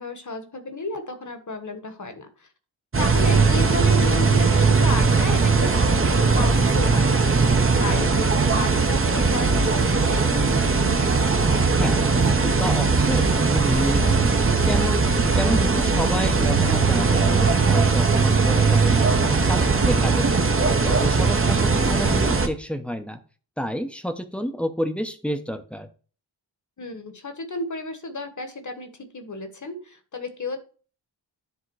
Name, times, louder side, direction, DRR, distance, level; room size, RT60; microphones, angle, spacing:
voice 1, 0.0-2.5 3.0-11.1 19.8-20.1 26.8-30.6, left 2 dB, 40° left, 7 dB, 1.4 m, -33 dB
sound 1, 2.9-22.5, right 4 dB, 30° right, 0.9 m, -19 dB
voice 2, 11.8-14.2 14.6-19.1 19.4-20.2 20.8-23.2 23.6-25.9, equal, 5° left, 8 dB, 0.8 m, -29 dB
10.5 x 3.6 x 4.7 m, 0.38 s
wide cardioid pair, 130°, 46 cm